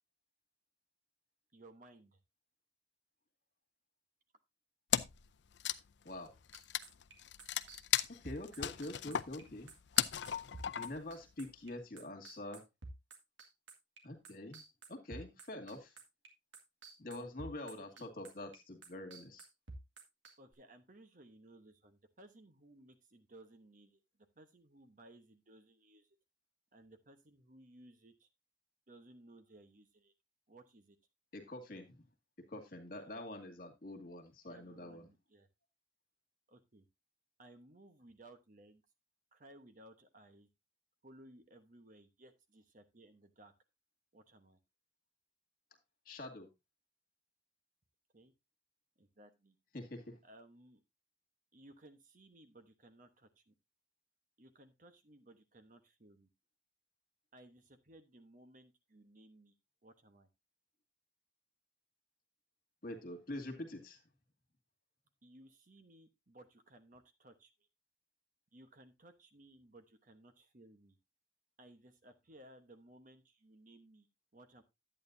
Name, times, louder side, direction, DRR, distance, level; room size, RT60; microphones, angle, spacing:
voice 1, 1.5-2.2 17.1-17.3 17.7-18.1 20.4-24.0 24.4-26.1 26.7-28.3 28.9-30.1 30.5-31.0 32.9-33.5 34.5-35.5 36.5-36.8 37.4-38.8 39.3-40.5 41.0-43.5 44.1-44.6 48.1-48.3 49.0-49.6 50.2-50.8 51.5-53.5 54.4-56.3 57.3-59.5 59.8-60.3 65.2-67.5 68.5-71.0 71.6-74.1 74.3-74.6, right 1 dB, 45° right, 8 dB, 1.1 m, -60 dB
Wood, 4.9-5.3 5.5-11.1, left 10 dB, 65° left, 0.5 m, -36 dB
sound 1, 6.5-16.3 16.5-20.5, right 3 dB, 85° right, 2.1 m, -51 dB
voice 2, 8.2-9.7 10.8-12.6 14.0-14.6 14.9-15.9 17.0-19.5 31.3-32.0 32.5-35.1 46.1-46.5 49.7-50.2 62.8-64.0, left 1 dB, 50° left, 6 dB, 2.1 m, -45 dB
11.0 x 8.9 x 2.7 m, 0.21 s
head